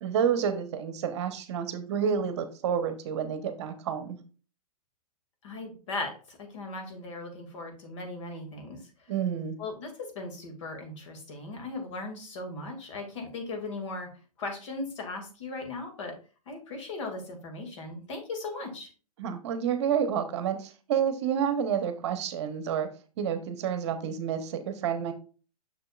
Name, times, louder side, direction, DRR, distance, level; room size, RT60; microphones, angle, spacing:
voice 1, 0.0-4.2 9.1-9.6 19.2-22.9 23.2-25.1, right 8 dB, 45° right, 9 dB, 0.9 m, -29 dB
voice 2, 5.4-8.8 9.6-14.1 14.4-16.1 16.5-18.9, left 3 dB, 50° left, 3 dB, 2.2 m, -38 dB
6.7 x 6.3 x 2.4 m, 0.36 s
figure-of-eight pair, 120°, 19 cm